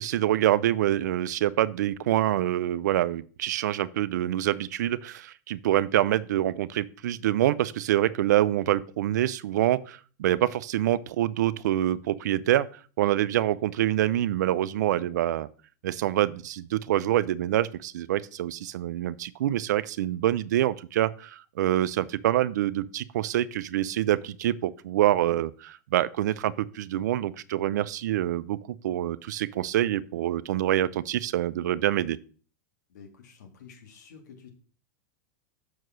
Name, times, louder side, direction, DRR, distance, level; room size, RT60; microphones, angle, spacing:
voice 1, 0.0-12.7 13.0-15.5 15.8-32.2, right 13 dB, 75° right, 0.5 m, -26 dB
voice 2, 32.9-34.5, left 6 dB, 80° left, 2.6 m, -50 dB
6.6 x 4.7 x 6.2 m
hypercardioid pair, 130°, 9 cm